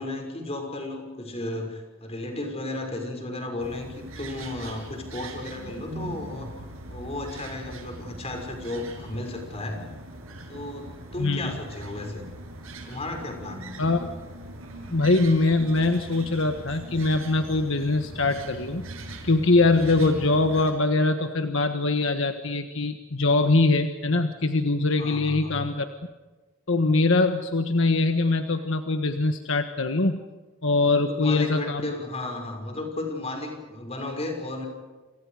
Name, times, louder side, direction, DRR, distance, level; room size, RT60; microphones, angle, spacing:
voice 1, 0.0-6.5 6.8-9.8 10.5-12.3 12.9-13.8 25.0-25.6 30.8-34.7, left 2 dB, 30° left, 4 dB, 6.0 m, -34 dB
sound 1, 3.6-20.7, right 1 dB, 85° right, 7.1 m, -41 dB
voice 2, 11.2-11.6 13.8-14.1 14.9-18.8 19.2-25.9 26.7-30.2 30.6-31.8, left 3 dB, 65° left, 7 dB, 1.5 m, -23 dB
29.0 x 28.0 x 5.0 m, 1.3 s
head